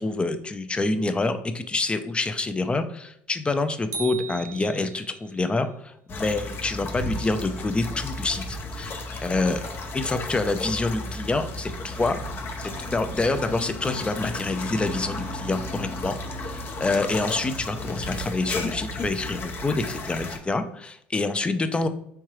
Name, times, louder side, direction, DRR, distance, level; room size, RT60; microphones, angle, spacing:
voice 1, 0.0-9.6 9.9-12.2 12.6-21.9, left 3 dB, 20° left, 9 dB, 0.5 m, -27 dB
sound 1, 3.9-5.3, right 5 dB, 60° right, 0.8 m, -37 dB
sound 2, 6.1-20.4, left 2 dB, 45° left, 0.8 m, -33 dB
4.5 x 3.6 x 3.1 m, 0.70 s
hypercardioid pair, 75°, 6 cm